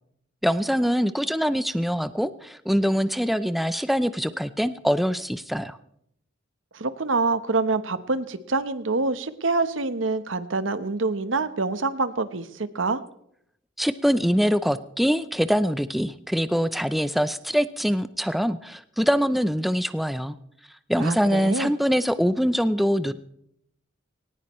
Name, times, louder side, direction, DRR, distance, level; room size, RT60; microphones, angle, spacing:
voice 1, 0.4-5.8 13.8-20.4 20.9-23.1, equal, ahead, 12 dB, 0.5 m, -24 dB
voice 2, 6.7-13.0 21.0-21.7, right 3 dB, 85° right, 12 dB, 1.0 m, -26 dB
18.5 x 18.5 x 3.1 m, 0.72 s
head